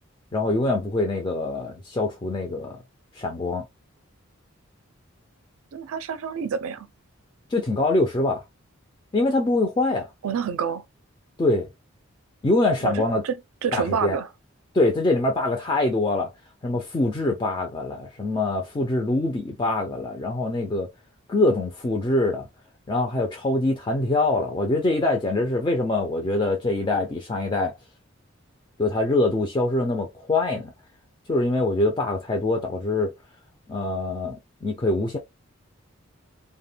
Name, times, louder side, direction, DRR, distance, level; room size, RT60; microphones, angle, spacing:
voice 1, 0.3-2.8 3.2-3.7 7.5-8.4 9.1-10.1 11.4-11.7 12.4-13.2 13.7-14.2 14.7-16.3 16.6-20.9 21.3-22.5 22.9-27.7 28.8-30.7 31.3-33.1 33.7-35.2, left 2 dB, 20° left, 0.3 m, -24 dB
voice 2, 5.7-6.9 10.2-10.8 12.8-14.3, right 7 dB, 80° right, 0.4 m, -28 dB
2.1 x 2.1 x 3.3 m
head